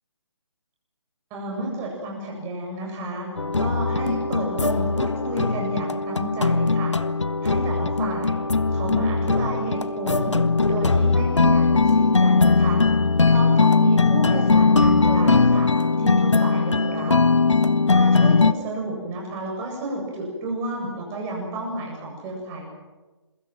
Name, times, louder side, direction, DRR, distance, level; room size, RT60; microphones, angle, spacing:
voice 1, 1.3-3.3 3.6-6.9 7.4-8.4 8.7-10.4 10.7-12.8 13.3-15.7 16.0-17.2 17.9-22.7, right 2 dB, 20° right, 0 dB, 7.5 m, -31 dB
sound 1, 3.4-18.5, left 4 dB, 80° left, 1.1 m, -20 dB
28.0 x 23.5 x 6.1 m, 1.2 s
figure-of-eight pair, 145°, 15 cm